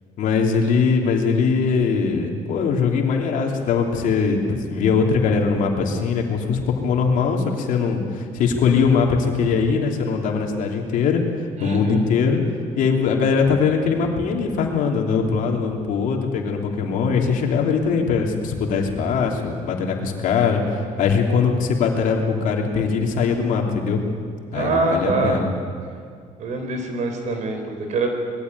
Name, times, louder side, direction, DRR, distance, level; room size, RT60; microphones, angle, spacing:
voice 1, 0.2-12.4 12.8-24.0 24.5-25.5, left 5 dB, 65° left, 2 dB, 3.0 m, -21 dB
voice 2, 11.6-12.0 24.5-25.4 26.4-28.1, right 3 dB, 55° right, 4 dB, 4.2 m, -24 dB
20.5 x 15.5 x 9.4 m, 2.2 s
cardioid pair, 125°, 14 cm